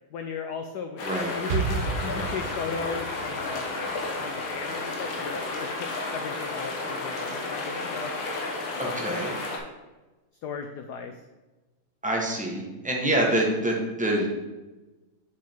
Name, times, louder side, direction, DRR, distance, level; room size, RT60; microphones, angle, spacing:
voice 1, 0.1-1.0 1.3-3.7 4.2-8.1 8.8-9.1 10.4-11.2, left 6 dB, 85° left, 6 dB, 0.9 m, -36 dB
sound 1, 1.0-9.6, left 3 dB, 65° left, 1.9 m, -32 dB
Explosion, 1.5-5.3, right 6 dB, 75° right, 0.9 m, -33 dB
voice 2, 8.7-9.3 12.0-14.4, right 1 dB, 5° right, -1 dB, 0.5 m, -26 dB
7.5 x 5.4 x 4.4 m, 1.1 s
omnidirectional pair, 2.4 m